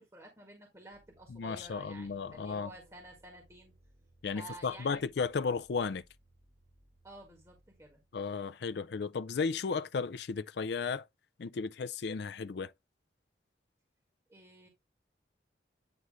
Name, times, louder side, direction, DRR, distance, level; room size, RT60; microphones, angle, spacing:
voice 1, 0.0-3.7 4.3-5.1 7.0-8.0 14.3-14.7, right 2 dB, 15° right, 1.8 m, -51 dB
sound 1, 0.9-8.3, right 1 dB, 40° right, 2.2 m, -65 dB
voice 2, 1.3-2.7 4.2-6.0 8.1-11.0 11.4-12.7, left 5 dB, 60° left, 0.4 m, -34 dB
9.4 x 3.2 x 3.7 m
head